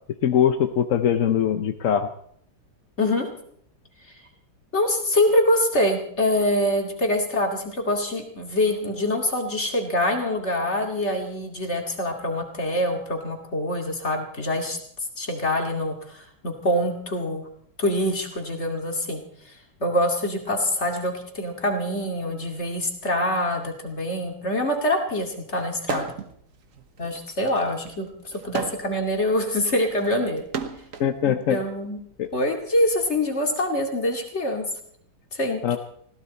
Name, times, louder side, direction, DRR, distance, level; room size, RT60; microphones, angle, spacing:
voice 1, 0.2-2.1 31.0-31.6 32.2-32.3 35.6-35.8, left 9 dB, 60° left, 8 dB, 0.8 m, -22 dB
voice 2, 4.7-14.8 15.2-17.4 17.8-19.2 19.8-26.0 27.0-30.4 31.2-32.0 32.3-34.6 35.3-35.6, left 1 dB, 30° left, 3 dB, 2.5 m, -25 dB
sound 1, 25.8-26.4 26.7-31.1 32.0-33.6, right 6 dB, 50° right, 1.2 m, -35 dB
20.5 x 16.5 x 4.2 m, 0.65 s
omnidirectional pair, 2.3 m